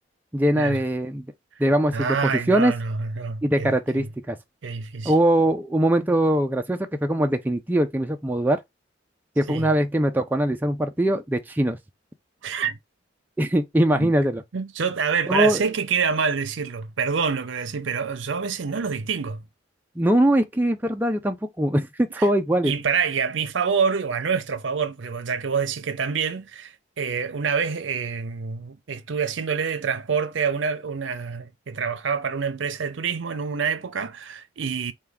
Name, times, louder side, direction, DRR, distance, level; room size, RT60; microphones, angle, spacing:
voice 1, 0.3-1.2 1.6-2.7 3.4-4.4 5.0-8.6 9.4-11.8 13.4-14.4 15.3-15.6 20.0-22.7, right 1 dB, 10° right, 0.3 m, -22 dB
voice 2, 1.9-3.7 4.6-5.1 9.5-9.7 12.4-12.8 13.9-14.1 14.5-19.4 22.2-22.3 22.6-34.9, right 6 dB, 75° right, 0.6 m, -26 dB
4.4 x 2.3 x 3.4 m
head